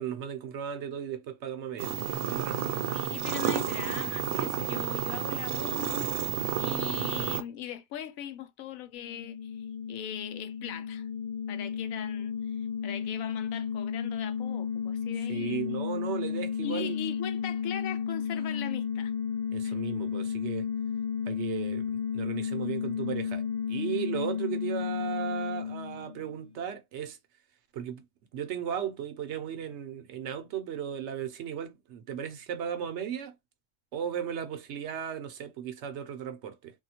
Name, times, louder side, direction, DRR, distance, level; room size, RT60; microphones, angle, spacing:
voice 1, 0.0-2.7 15.3-17.0 19.5-20.7 21.3-27.2 27.7-28.0 28.3-33.3 33.9-36.7, right 9 dB, 65° right, 0.8 m, -36 dB
sound 1, 1.8-7.4, right 9 dB, 85° right, 1.0 m, -31 dB
voice 2, 2.9-11.1 11.5-15.6 16.6-19.1 19.6-19.8, left 10 dB, 90° left, 1.0 m, -40 dB
sound 2, 9.0-26.5, left 7 dB, 40° left, 0.7 m, -33 dB
3.5 x 2.2 x 2.8 m
omnidirectional pair, 1.4 m